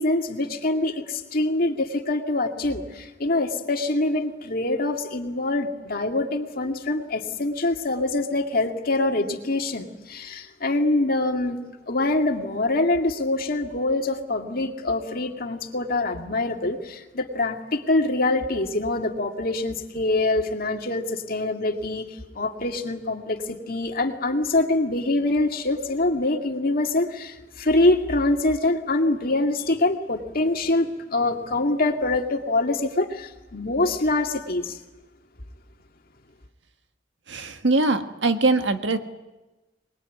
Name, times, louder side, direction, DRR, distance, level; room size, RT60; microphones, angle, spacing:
voice 1, 0.0-34.8, left 2 dB, 50° left, 4 dB, 2.2 m, -25 dB
voice 2, 37.3-39.0, right 3 dB, 75° right, 8 dB, 1.6 m, -22 dB
23.5 x 21.0 x 9.4 m, 1.1 s
head